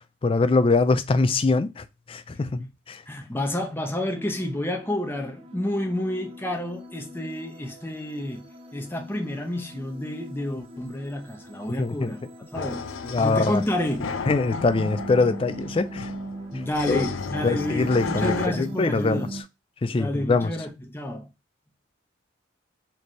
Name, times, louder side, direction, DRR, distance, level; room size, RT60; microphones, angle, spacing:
voice 1, 0.2-3.0 11.7-12.1 13.0-13.6 14.3-16.1 16.9-17.0 17.4-19.3 19.8-20.5, left 3 dB, 25° left, 0.3 m, -23 dB
voice 2, 3.1-12.2 12.5-12.9 13.2-14.2 16.5-19.3 19.9-21.3, left 1 dB, 10° left, 0.8 m, -29 dB
sound 1, 4.1-19.4, right 1 dB, 30° right, 0.7 m, -40 dB
sound 2, 12.5-18.5, left 5 dB, 90° left, 0.5 m, -34 dB
4.2 x 3.3 x 3.0 m
head